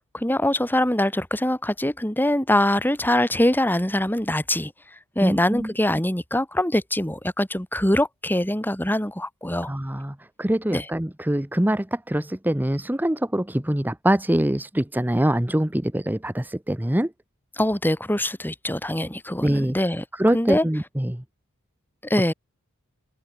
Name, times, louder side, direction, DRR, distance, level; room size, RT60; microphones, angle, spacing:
voice 1, 0.0-4.7 5.2-9.7 10.7-10.9 17.6-20.0 20.3-20.7 22.0-22.3, left 1 dB, 10° left, 3.6 m, -23 dB
voice 2, 5.2-5.7 9.7-17.1 19.4-19.8 20.2-21.2, right 1 dB, 10° right, 0.9 m, -24 dB
open air
head